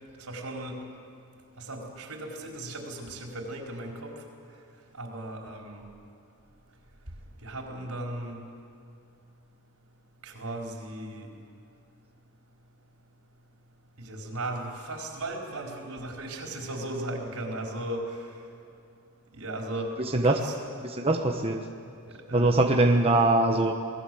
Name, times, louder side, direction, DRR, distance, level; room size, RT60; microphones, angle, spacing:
voice 1, 0.3-0.8 1.6-4.1 5.0-5.8 7.4-8.4 10.2-11.3 14.0-18.1 19.3-19.9 20.2-20.6 22.1-22.5, right 1 dB, 80° right, 0 dB, 4.7 m, -36 dB
voice 2, 20.8-21.7 22.3-23.7, right 2 dB, 25° right, 3 dB, 1.1 m, -22 dB
28.0 x 19.5 x 7.9 m, 2.5 s
head